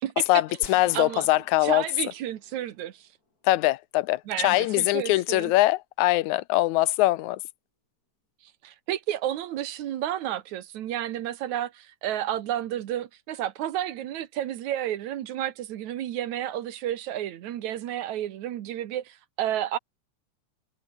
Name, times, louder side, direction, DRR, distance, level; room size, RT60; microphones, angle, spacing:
voice 1, 0.3-1.8 3.4-7.4, left 17 dB, 80° left, 2.0 m, -22 dB
sound 1, 0.6-3.5, left 3 dB, 30° left, 4.9 m, -50 dB
voice 2, 0.9-1.3 1.6-3.1 4.3-5.5 8.6-19.8, right 11 dB, 75° right, 2.6 m, -31 dB
omnidirectional pair, 3.4 m